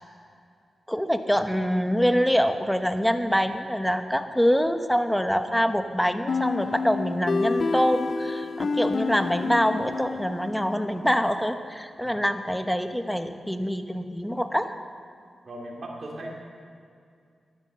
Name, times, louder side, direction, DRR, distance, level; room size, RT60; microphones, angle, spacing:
voice 1, 0.9-14.7, equal, 5° left, 8 dB, 1.0 m, -25 dB
sound 1, 6.3-10.9, left 4 dB, 65° left, 0.5 m, -29 dB
voice 2, 15.4-16.3, right 1 dB, 55° right, -2 dB, 2.4 m, -38 dB
13.5 x 11.0 x 6.7 m, 2.3 s
cardioid pair, 55°, 0 cm